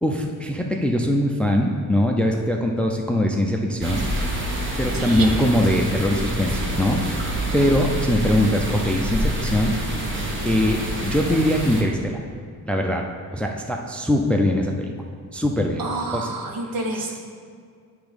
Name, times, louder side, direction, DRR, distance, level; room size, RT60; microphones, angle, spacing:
voice 1, 0.0-4.1 4.8-7.2 7.5-9.8 10.4-12.2 12.7-13.0 13.3-14.9 15.3-15.8 16.1-16.3, left 1 dB, 5° left, 2 dB, 0.4 m, -22 dB
sound 1, 3.8-11.8, right 1 dB, 35° right, 1.1 m, -27 dB
voice 2, 4.9-5.3 15.8-17.2, right 2 dB, 70° right, 2 dB, 1.1 m, -29 dB
9.9 x 3.5 x 5.1 m, 2.2 s
cardioid pair, 150°, 35 cm